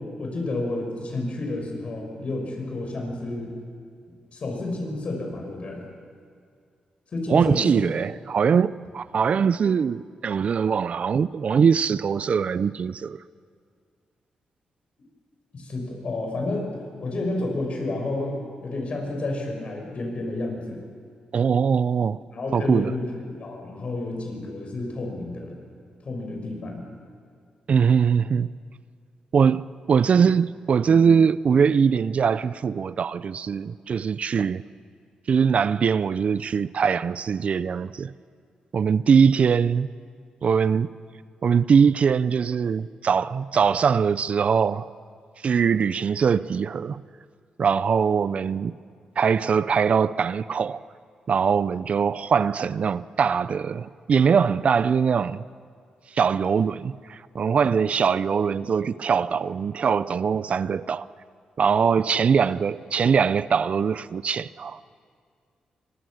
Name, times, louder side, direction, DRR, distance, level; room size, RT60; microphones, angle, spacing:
voice 1, 0.2-3.5 4.3-5.8 7.1-7.9 15.5-16.7 17.0-20.8 22.3-25.5 26.0-26.9, left 2 dB, 55° left, 6.2 m, -30 dB
voice 2, 7.3-13.2 21.3-22.2 22.5-22.9 27.7-28.5 29.3-34.6 35.3-38.1 38.7-39.9 40.4-40.9 41.4-44.9 45.4-47.0 47.6-48.8 49.2-50.8 51.3-55.4 56.1-61.1 61.6-64.8, right 6 dB, 55° right, 0.5 m, -22 dB
24.5 x 20.5 x 6.5 m
cardioid pair, 65°, 3 cm